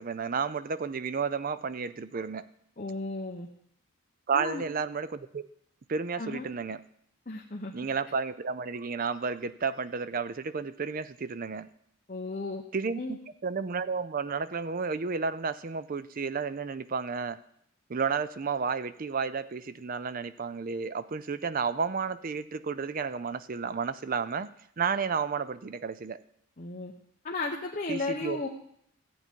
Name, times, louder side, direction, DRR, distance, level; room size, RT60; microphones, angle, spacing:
voice 1, 0.0-2.5 4.3-5.5 5.9-6.8 7.7-11.7 12.7-17.4 17.9-24.5 24.8-26.2 27.9-28.4, right 5 dB, 40° right, 14 dB, 0.5 m, -32 dB
voice 2, 2.8-3.5 4.3-4.6 6.2-6.5 7.3-7.9 12.1-12.6 13.0-13.2 26.6-26.9 27.2-28.5, left 2 dB, 35° left, -1 dB, 1.0 m, -34 dB
14.5 x 8.4 x 4.5 m, 0.71 s
head